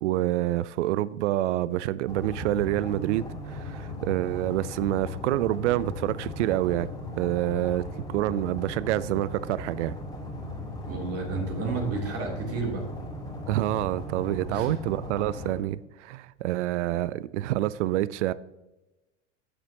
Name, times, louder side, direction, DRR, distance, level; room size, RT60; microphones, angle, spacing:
voice 1, 0.0-6.9 7.2-9.9 13.5-18.3, right 14 dB, 75° right, 0.5 m, -27 dB
sound 1, 2.1-15.5, left 2 dB, 10° left, 3.2 m, -37 dB
voice 2, 10.9-12.8 14.5-14.7, right 4 dB, 40° right, 3.3 m, -31 dB
15.0 x 6.7 x 2.9 m
hypercardioid pair, 90°, 36 cm